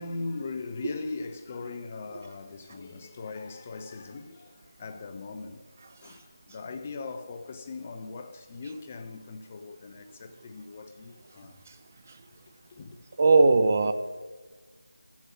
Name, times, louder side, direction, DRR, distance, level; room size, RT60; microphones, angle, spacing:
voice 1, 0.0-5.6 6.0-11.6 12.7-13.0, left 3 dB, 25° left, 0.5 m, -39 dB
voice 2, 13.2-13.9, right 3 dB, 30° right, 0.5 m, -18 dB
13.0 x 7.2 x 7.2 m
figure-of-eight pair, 165°, 2 cm